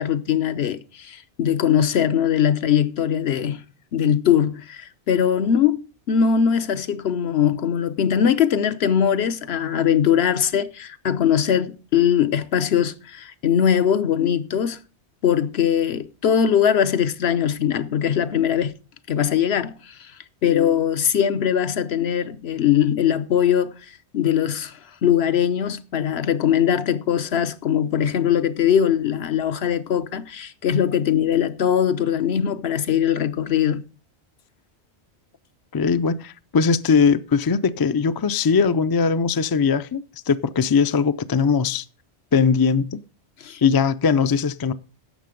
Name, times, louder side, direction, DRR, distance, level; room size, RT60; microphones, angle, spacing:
voice 1, 0.0-3.6 3.9-14.8 15.2-18.7 19.1-20.1 20.4-33.8 43.4-43.6, left 9 dB, 70° left, 1.0 m, -21 dB
voice 2, 35.7-41.8 42.3-43.0 43.6-44.7, left 5 dB, 40° left, 0.3 m, -20 dB
11.5 x 7.6 x 5.1 m
omnidirectional pair, 1.1 m